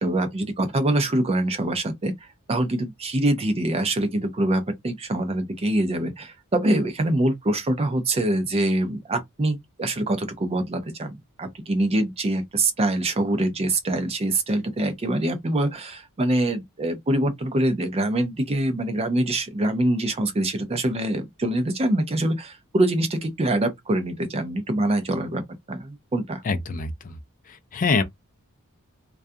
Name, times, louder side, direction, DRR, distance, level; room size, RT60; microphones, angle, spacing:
voice 1, 0.0-25.4 25.7-26.4, right 1 dB, 30° right, 0.5 m, -24 dB
voice 2, 26.4-27.1 27.5-28.0, left 4 dB, 40° left, 0.4 m, -25 dB
2.3 x 2.3 x 2.6 m
head